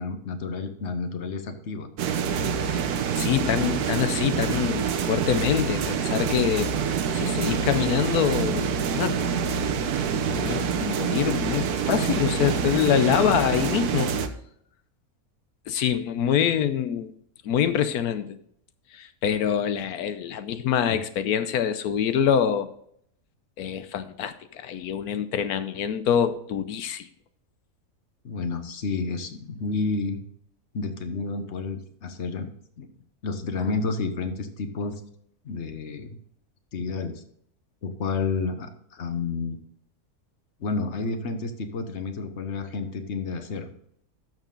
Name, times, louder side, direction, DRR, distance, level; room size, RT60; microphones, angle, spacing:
voice 1, 0.0-1.9 28.2-30.2 30.7-32.5 32.8-32.9 33.2-34.9 35.4-36.2 36.7-37.2 37.8-39.6 40.6-43.7, left 4 dB, 50° left, 8 dB, 1.2 m, -30 dB
sound 1, 2.0-14.3, right 6 dB, 85° right, 1.3 m, -26 dB
voice 2, 3.2-6.7 7.1-9.2 10.4-14.1 15.7-17.1 17.4-18.4 18.9-22.7 23.6-27.1, left 9 dB, 80° left, 11 dB, 1.2 m, -25 dB
12.5 x 6.7 x 3.8 m, 0.67 s
omnidirectional pair, 1.6 m